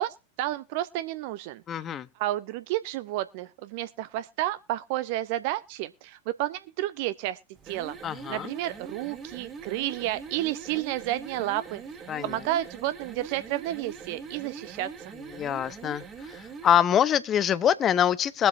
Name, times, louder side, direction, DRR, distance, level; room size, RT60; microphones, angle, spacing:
voice 1, 0.0-1.6 2.2-7.4 7.6-8.0 8.3-11.8 12.2-15.1, right 15 dB, 45° right, 0.7 m, -31 dB
voice 2, 1.7-2.1 8.0-8.5 12.1-12.4 15.3-18.5, left 9 dB, 25° left, 0.7 m, -25 dB
sound 1, 7.6-16.8, right 5 dB, 20° right, 1.7 m, -43 dB
22.0 x 7.8 x 2.6 m
figure-of-eight pair, 90°, 0 cm